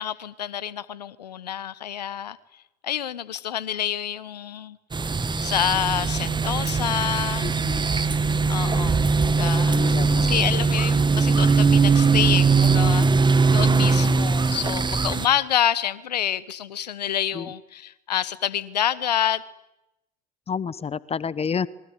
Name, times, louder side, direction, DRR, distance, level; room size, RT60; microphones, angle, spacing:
voice 1, 0.0-2.4 2.8-4.8 5.4-7.6 8.5-9.8 10.2-19.4, left 10 dB, 85° left, 19 dB, 1.1 m, -28 dB
sound 1, 4.9-15.3, right 4 dB, 20° right, 1.9 m, -20 dB
voice 2, 7.4-7.9 9.7-10.4 17.3-17.5 20.5-21.7, left 6 dB, 30° left, 20 dB, 1.1 m, -29 dB
26.0 x 23.5 x 9.7 m, 0.87 s
figure-of-eight pair, 60°, 20 cm